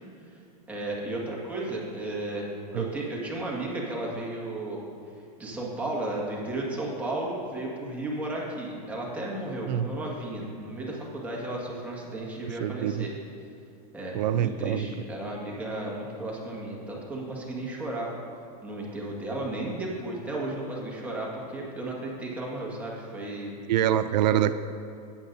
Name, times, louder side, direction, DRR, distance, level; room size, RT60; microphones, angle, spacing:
voice 1, 0.7-2.5 2.8-4.8 5.4-13.1 13.9-18.1 18.6-23.5, right 2 dB, 5° right, -4 dB, 1.8 m, -34 dB
voice 2, 12.4-13.1 14.1-14.9 23.7-24.5, right 11 dB, 90° right, 12 dB, 0.5 m, -25 dB
17.0 x 8.4 x 2.7 m, 2.7 s
supercardioid pair, 150°, 21 cm